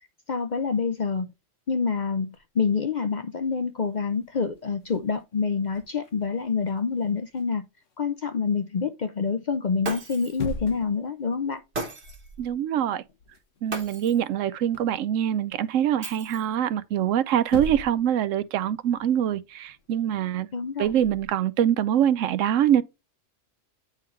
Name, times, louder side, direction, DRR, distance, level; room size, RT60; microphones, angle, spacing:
voice 1, 0.3-1.3 1.7-7.6 8.0-11.6 20.5-20.9, left 5 dB, 50° left, 0.6 m, -27 dB
sound 1, 2.3-2.7 3.3-3.4 3.7-8.0 10.1-11.0 11.4-11.6 12.0-12.6 12.8-15.0 17.0-17.1 17.4-18.1 18.4-21.3, left 3 dB, 75° left, 1.4 m, -41 dB
Shatter, 9.8-10.5 11.7-12.3 13.7-14.3 16.0-16.7, right 3 dB, 55° right, 1.8 m, -35 dB
voice 2, 12.4-13.0 13.6-20.5 20.8-22.8, right 10 dB, 80° right, 1.0 m, -24 dB
9.2 x 3.9 x 3.0 m
omnidirectional pair, 1.3 m